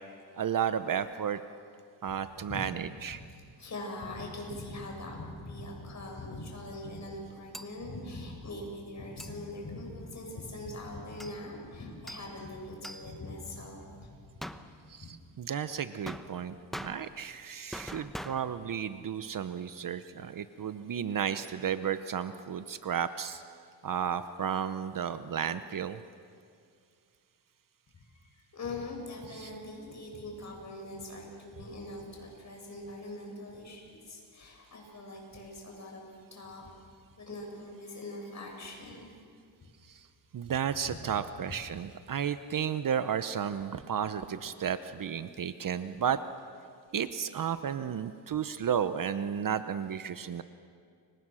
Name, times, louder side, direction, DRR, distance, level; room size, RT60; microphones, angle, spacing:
voice 1, 0.3-1.4 2.0-3.2 14.9-23.4 23.8-26.0 29.3-29.5 39.8-40.1 40.3-46.2 46.9-50.4, right 8 dB, 45° right, 12 dB, 0.9 m, -33 dB
voice 2, 2.4-2.8 3.1-14.1 14.8-15.1 27.9-36.6 37.1-39.1 40.4-41.3, left 2 dB, 40° left, 0 dB, 7.4 m, -42 dB
sound 1, 7.5-7.8 9.2-9.3 11.2-11.4 12.1-12.4 12.8-13.1 14.4-15.0 16.1-17.4 17.7-18.8, equal, ahead, 1.0 m, -43 dB
29.5 x 24.5 x 6.4 m, 2.3 s
cardioid pair, 115°, 45 cm